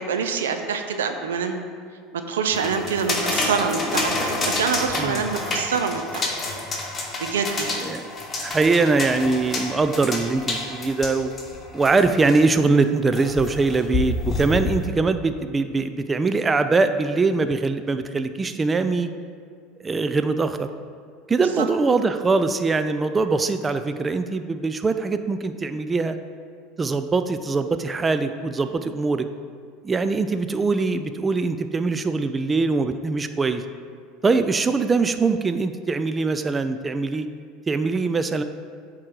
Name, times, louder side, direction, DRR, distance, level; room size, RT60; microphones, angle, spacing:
voice 1, 0.0-1.6 2.1-6.3 7.2-7.8 21.6-21.7, right 6 dB, 85° right, 6 dB, 0.6 m, -26 dB
sound 1, 2.5-12.5 13.1-14.9, left 2 dB, 25° left, 1.6 m, -28 dB
voice 2, 5.0-5.3 7.8-8.0 8.4-11.3 11.7-19.1 19.8-20.7 21.3-26.2 26.8-29.3 29.8-33.6 34.2-37.3 37.7-38.4, right 3 dB, 20° right, 9 dB, 0.4 m, -22 dB
8.5 x 3.8 x 4.7 m, 2.3 s
hypercardioid pair, 85°, 0 cm